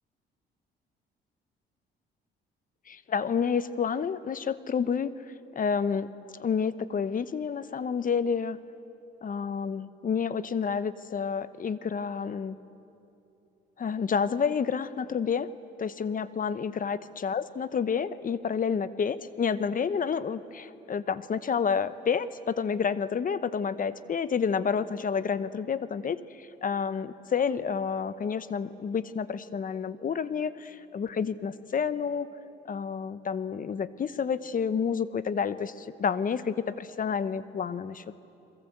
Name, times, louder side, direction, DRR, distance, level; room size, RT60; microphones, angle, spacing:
voice 1, 2.9-5.2 5.5-6.1 6.4-8.6 9.2-12.6 13.8-15.5 15.8-32.3 32.6-38.1, left 6 dB, 45° left, 14 dB, 1.0 m, -29 dB
29.5 x 22.5 x 8.0 m, 2.8 s
cardioid pair, 90°, 20 cm